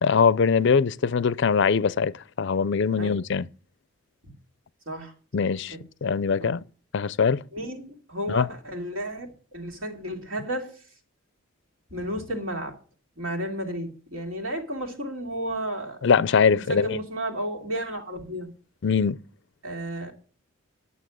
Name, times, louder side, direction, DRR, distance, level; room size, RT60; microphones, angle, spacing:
voice 1, 0.0-3.5 5.3-6.6 6.9-7.4 8.3-8.5 16.0-17.0 18.8-19.2, left 5 dB, 55° left, 0.4 m, -22 dB
voice 2, 7.5-10.7 11.9-12.8 13.2-16.0 16.5-18.5 19.6-20.1, right 1 dB, 65° right, 2.7 m, -32 dB
11.5 x 7.1 x 6.2 m
head